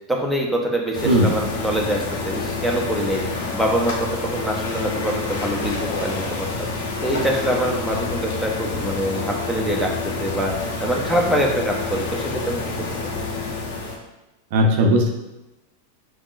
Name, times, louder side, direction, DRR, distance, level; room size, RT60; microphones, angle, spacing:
voice 1, 0.1-6.7 7.0-9.9 10.2-12.6, equal, ahead, -2 dB, 0.7 m, -24 dB
sound 1, 0.9-14.0, left 3 dB, 55° left, 0.7 m, -28 dB
voice 2, 1.0-1.3 14.5-15.1, equal, 50° right, 2 dB, 0.5 m, -17 dB
4.7 x 3.6 x 2.4 m, 1.0 s
figure-of-eight pair, 90°, 0 cm